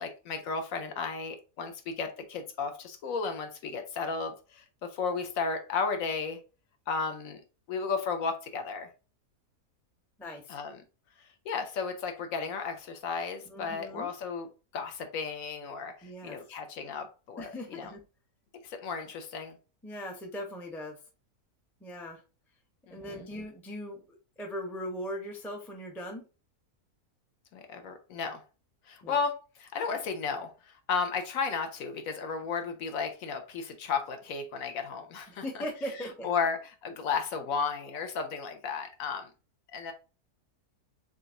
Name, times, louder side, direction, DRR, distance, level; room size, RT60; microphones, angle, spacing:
voice 1, 0.0-6.4 6.9-7.4 7.7-8.9 10.5-10.8 11.2-14.5 14.7-17.9 18.6-19.6 22.9-23.2 27.5-28.4 28.9-35.4 36.2-39.3 39.7-39.9, left 5 dB, 70° left, 1.0 m, -34 dB
voice 2, 10.2-10.6 13.5-14.1 16.0-16.4 17.4-18.0 19.8-21.0 21.8-22.2 22.9-24.0 24.4-26.3 29.0-29.2 35.3-36.3, equal, 5° left, 0.4 m, -39 dB
3.9 x 3.4 x 2.5 m
omnidirectional pair, 1.6 m